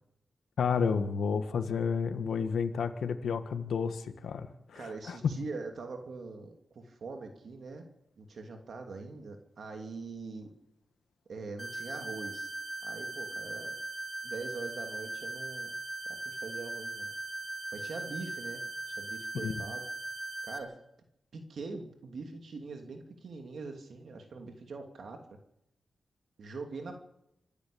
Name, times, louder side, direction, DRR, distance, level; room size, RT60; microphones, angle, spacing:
voice 1, 0.6-5.3 19.3-19.6, left 6 dB, 85° left, 9 dB, 1.6 m, -31 dB
voice 2, 4.7-7.9 8.2-10.5 11.3-12.5 12.8-13.7 14.2-15.7 16.0-17.1 17.7-18.6 19.0-19.8 20.4-20.8 21.3-25.2 26.4-27.0, right 3 dB, 65° right, 4 dB, 2.8 m, -43 dB
sound 1, 11.6-20.6, right 2 dB, 15° right, 3.8 m, -39 dB
26.0 x 12.0 x 8.6 m, 0.81 s
wide cardioid pair, 105°, 0 cm